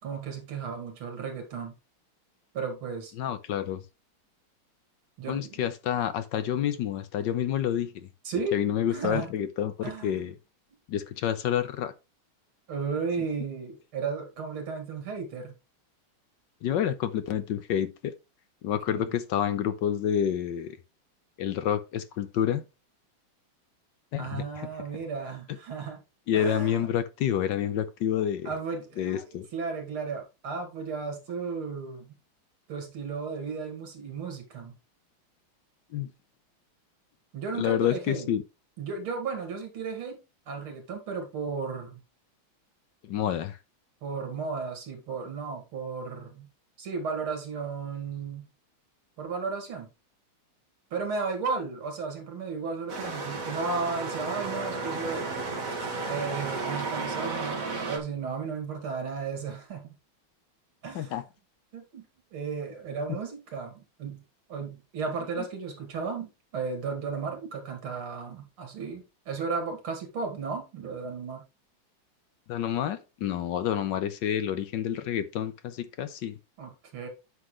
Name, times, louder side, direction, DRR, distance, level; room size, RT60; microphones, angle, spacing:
voice 1, 0.0-1.7 2.5-3.1 5.2-5.6 8.2-8.6 8.9-9.3 9.8-10.2 12.7-15.5 18.9-19.1 24.2-26.0 26.3-26.9 28.4-32.2 32.7-34.7 37.3-38.3 38.8-40.2 40.5-42.0 44.0-46.5 46.8-48.5 49.2-49.9 50.9-55.3 56.1-60.0 60.8-61.2 61.7-62.0 62.3-64.2 64.5-71.4 76.6-77.1, right 5 dB, 85° right, 3.1 m, -34 dB
voice 2, 3.2-3.8 5.3-8.1 8.5-10.3 10.9-11.9 16.6-18.1 18.6-20.8 21.4-22.6 24.1-24.7 26.3-28.5 29.0-29.5 35.9-36.1 37.6-38.4 43.0-43.6 60.9-61.2 72.5-76.4, left 9 dB, 70° left, 1.3 m, -28 dB
sound 1, 52.9-58.0, right 3 dB, 40° right, 2.2 m, -33 dB
9.6 x 6.0 x 3.2 m
omnidirectional pair, 2.3 m